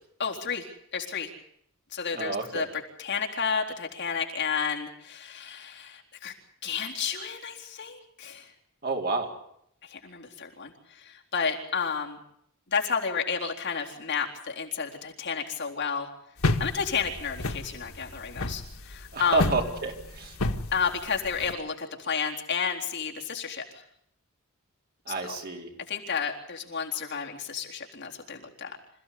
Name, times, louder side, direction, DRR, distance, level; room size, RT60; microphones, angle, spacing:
voice 1, 0.2-1.3 1.9-2.7 3.0-6.3 6.6-8.5 9.8-12.2 12.7-16.1 16.6-19.5 20.7-23.8 25.2-25.4 25.9-28.8, left 6 dB, 55° left, 0 dB, 3.9 m, -31 dB
voice 2, 2.1-2.7 8.8-9.3 19.1-20.4 25.1-25.7, right 3 dB, 45° right, 2 dB, 4.3 m, -29 dB
sound 1, 16.4-21.5, left 2 dB, 85° left, 1.8 m, -30 dB
27.0 x 16.0 x 8.5 m, 0.71 s
head